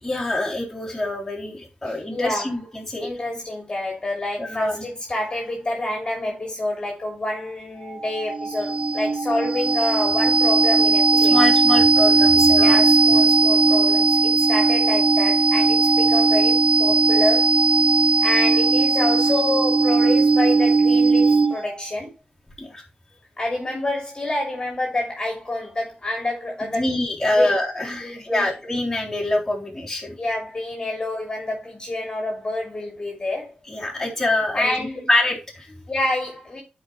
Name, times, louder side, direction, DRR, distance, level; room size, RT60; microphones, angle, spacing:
voice 1, 0.0-3.1 4.4-4.9 11.3-12.8 18.2-18.3 22.6-22.8 26.6-30.2 33.7-35.8, left 2 dB, 15° left, 3.7 m, -25 dB
voice 2, 1.8-2.5 3.0-11.4 12.6-17.5 18.2-22.1 23.4-26.9 27.3-27.5 27.9-28.5 30.2-33.5 34.5-35.1 35.9-36.6, left 1 dB, 30° left, 2.9 m, -28 dB
sound 1, 7.9-21.7, right 4 dB, 30° right, 0.7 m, -18 dB
11.5 x 5.0 x 3.2 m
cardioid pair, 70°, 3 cm